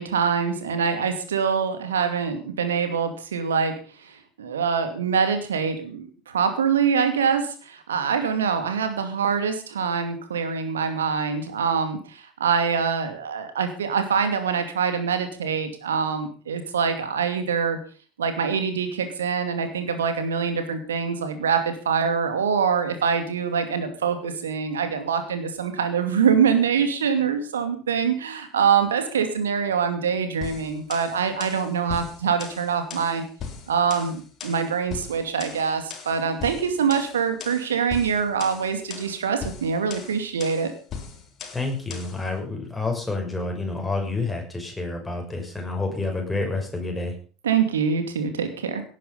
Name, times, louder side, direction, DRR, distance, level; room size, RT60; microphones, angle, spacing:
voice 1, 0.0-3.7 4.0-17.8 18.2-33.3 33.7-40.7 47.4-48.8, right 6 dB, 75° right, 8 dB, 2.5 m, -24 dB
sound 1, 30.4-42.2, left 6 dB, 40° left, 3.7 m, -39 dB
voice 2, 41.5-47.1, left 3 dB, 10° left, 2 dB, 6.4 m, -29 dB
17.5 x 10.0 x 5.6 m, 0.40 s
figure-of-eight pair, 70°, 0 cm